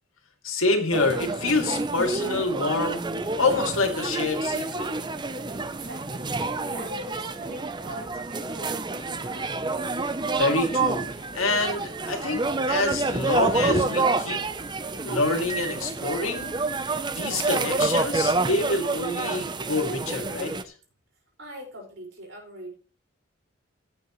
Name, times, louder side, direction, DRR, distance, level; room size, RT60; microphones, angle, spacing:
voice 1, 0.4-3.0 3.4-4.9 10.4-12.4 12.7-14.4 15.0-16.5 17.1-20.7, left 2 dB, 90° left, 4 dB, 2.4 m, -26 dB
sound 1, 0.9-20.6, right 3 dB, 20° right, 0.6 m, -28 dB
voice 2, 5.5-6.3 6.7-9.6 21.4-22.7, equal, 65° right, -1 dB, 5.1 m, -42 dB
16.0 x 8.5 x 3.1 m, 0.38 s
head